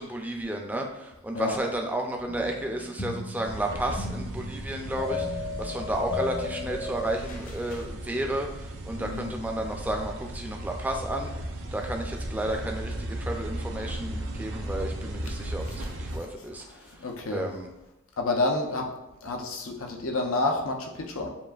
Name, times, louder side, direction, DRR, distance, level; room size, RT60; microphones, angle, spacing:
voice 1, 0.0-17.1 17.3-17.7, right 1 dB, 10° right, 2 dB, 0.4 m, -32 dB
sound 1, 2.3-7.9, left 3 dB, 40° left, 0.7 m, -36 dB
sound 2, 3.4-16.2, right 1 dB, 60° right, 0.5 m, -36 dB
voice 2, 9.0-9.3 15.4-16.0 16.7-17.5 18.2-18.9 19.2-21.3, left 2 dB, 90° left, 2 dB, 0.7 m, -30 dB
7.2 x 2.5 x 2.4 m, 0.95 s
head